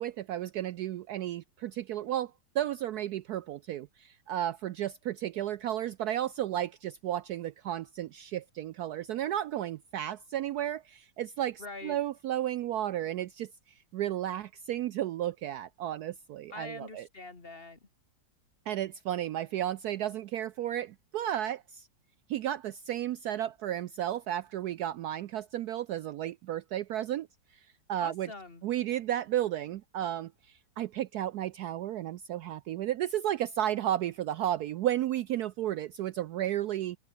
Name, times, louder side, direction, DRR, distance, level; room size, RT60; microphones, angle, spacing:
voice 1, 0.0-13.5 13.9-17.1 18.7-21.9 22.3-27.3 27.5-28.3 28.6-37.0, right 12 dB, 70° right, 1.0 m, -33 dB
voice 2, 11.6-12.0 16.5-17.8 28.0-28.6, left 3 dB, 30° left, 2.2 m, -44 dB
open air
omnidirectional pair, 2.0 m